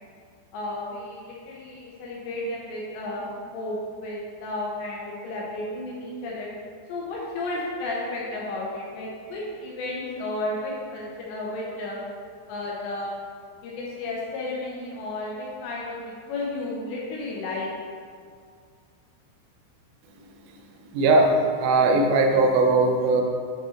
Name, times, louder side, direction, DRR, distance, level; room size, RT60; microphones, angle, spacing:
voice 1, 0.5-6.5 6.9-12.0 12.5-13.1 13.6-17.7, left 2 dB, 75° left, -4 dB, 2.8 m, -33 dB
voice 2, 20.9-23.2, right 2 dB, 90° right, 2 dB, 3.4 m, -19 dB
8.9 x 5.4 x 3.8 m, 2.1 s
omnidirectional pair, 5.6 m